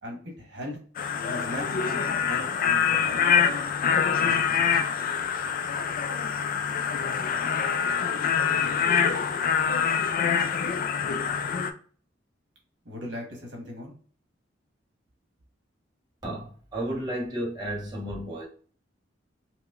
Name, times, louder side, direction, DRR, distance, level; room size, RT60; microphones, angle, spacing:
voice 1, 0.0-0.8 1.2-3.2 4.2-4.8 12.8-13.9, left 1 dB, 70° right, 1.2 m, -39 dB
sound 1, 1.0-11.7, left 7 dB, 50° left, 0.3 m, -25 dB
voice 2, 16.2-18.5, right 1 dB, 20° right, 1.1 m, -32 dB
4.6 x 2.1 x 2.4 m
head